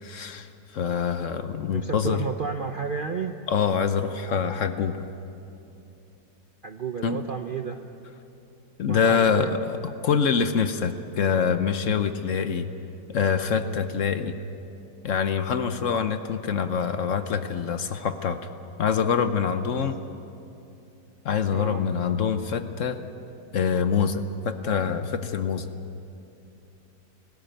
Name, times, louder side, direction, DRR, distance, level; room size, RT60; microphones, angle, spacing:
voice 1, 0.0-2.2 3.5-5.1 7.0-7.2 8.8-12.7 13.1-14.3 15.0-18.4 18.8-20.0 21.2-23.0 23.5-25.7, left 6 dB, 60° left, 10 dB, 1.0 m, -25 dB
voice 2, 1.7-3.4 6.6-7.8 8.9-9.5 19.7-19.9 21.5-21.9, right 6 dB, 55° right, 6 dB, 0.6 m, -32 dB
18.0 x 17.0 x 9.0 m, 2.8 s
omnidirectional pair, 1.8 m